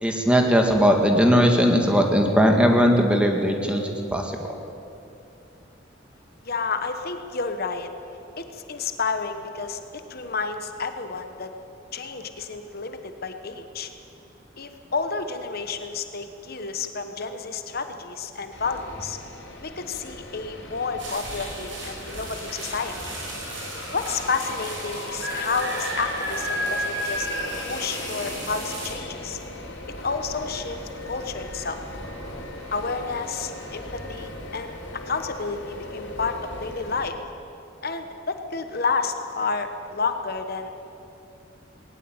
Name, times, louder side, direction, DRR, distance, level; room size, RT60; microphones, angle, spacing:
voice 1, 0.0-4.3, equal, 5° right, 3 dB, 2.0 m, -19 dB
voice 2, 6.4-7.9 8.4-11.5 11.9-13.9 14.6-19.2 19.6-22.9 23.9-27.3 27.7-29.4 30.0-31.8 32.7-34.7 35.1-37.2 37.8-40.7, left 4 dB, 50° left, 7 dB, 1.2 m, -30 dB
sound 1, 18.5-37.1, left 1 dB, 70° left, 4.1 m, -38 dB
sound 2, 21.0-28.9, right 1 dB, 75° right, 6.2 m, -33 dB
19.5 x 18.5 x 8.9 m, 2.8 s
head